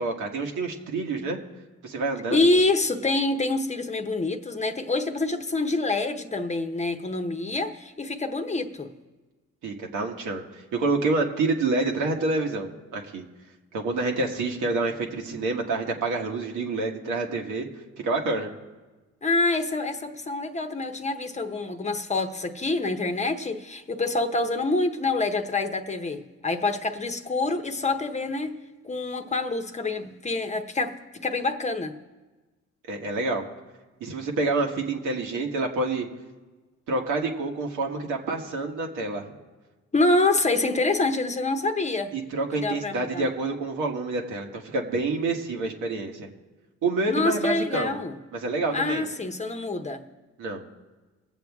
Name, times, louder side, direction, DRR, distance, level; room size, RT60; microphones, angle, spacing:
voice 1, 0.0-1.4 1.8-2.5 9.6-13.2 13.7-17.7 18.0-18.5 32.9-33.4 34.0-36.1 36.9-39.2 42.1-46.3 46.8-48.0 48.3-49.0 50.4-50.6, right 3 dB, 85° right, 1.5 m, -28 dB
voice 2, 2.3-8.9 19.2-28.6 28.8-32.0 39.9-42.1 42.5-43.3 47.1-48.2 48.7-50.0, left 2 dB, 25° left, 0.9 m, -26 dB
21.0 x 7.7 x 3.5 m
cardioid pair, 90°, 30 cm